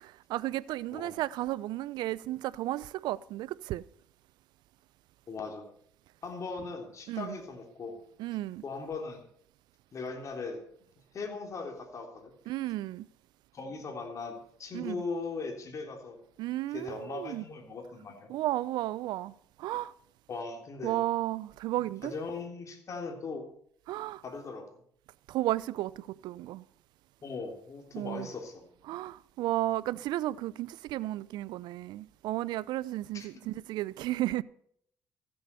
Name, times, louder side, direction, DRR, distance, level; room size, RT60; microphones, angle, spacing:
voice 1, 0.0-3.8 7.1-7.3 8.2-8.6 12.5-13.1 14.7-15.0 16.4-17.4 18.3-19.3 19.6-19.9 20.8-22.1 23.9-24.2 25.3-26.6 27.9-28.3 28.9-34.4, right 15 dB, 75° right, 0.5 m, -33 dB
voice 2, 0.9-1.2 5.3-5.7 6.2-8.0 8.6-9.2 9.9-10.6 11.1-12.3 13.5-16.2 16.7-18.3 20.3-21.0 22.0-23.5 24.2-24.7 27.2-28.7 33.1-33.5, left 4 dB, 45° left, 3.4 m, -39 dB
14.5 x 7.9 x 6.9 m
supercardioid pair, 85°, 7 cm